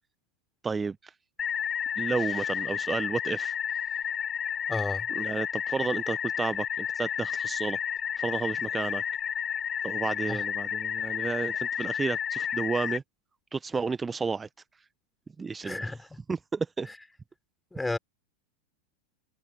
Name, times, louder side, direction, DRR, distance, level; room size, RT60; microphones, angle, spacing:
voice 1, 0.6-1.1 2.0-3.5 5.2-7.8 8.2-9.0 9.8-13.0 13.5-14.5 15.4-15.9 16.3-16.9, right 4 dB, 15° right, 1.0 m, -32 dB
sound 1, 1.4-13.0, left 8 dB, 25° left, 0.5 m, -31 dB
voice 2, 4.7-5.1 10.3-10.4 15.6-16.2 17.7-18.0, left 2 dB, 5° left, 4.4 m, -32 dB
figure-of-eight pair, 90°, 0 cm